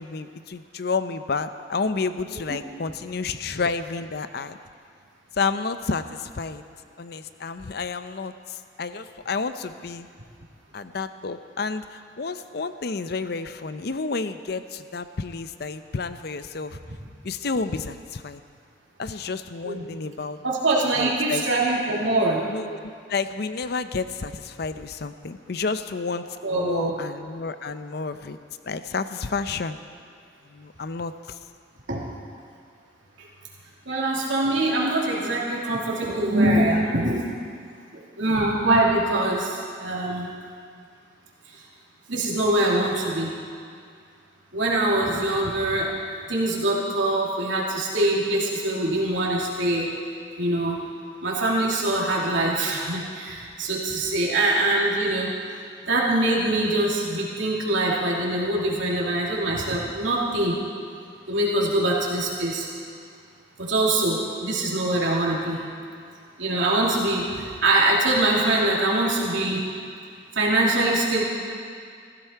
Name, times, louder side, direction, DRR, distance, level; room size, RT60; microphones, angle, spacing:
voice 1, 0.0-4.6 5.4-6.6 7.0-10.1 10.7-16.8 17.2-18.4 19.0-20.4 21.0-21.4 22.5-26.2 26.5-28.4 28.6-29.8 30.5-31.1, left 4 dB, 55° left, 11 dB, 0.6 m, -30 dB
voice 2, 20.4-22.4 26.4-26.9 31.9-32.1 33.2-33.3 33.9-37.3 37.9-40.3 42.1-43.3 44.5-45.9 46.3-49.9 50.4-50.8 51.2-55.3 55.9-60.6 61.3-62.7 63.6-65.6 66.4-69.6 70.3-71.2, right 1 dB, 85° right, -3 dB, 2.9 m, -23 dB
16.5 x 15.5 x 4.5 m, 2.2 s
head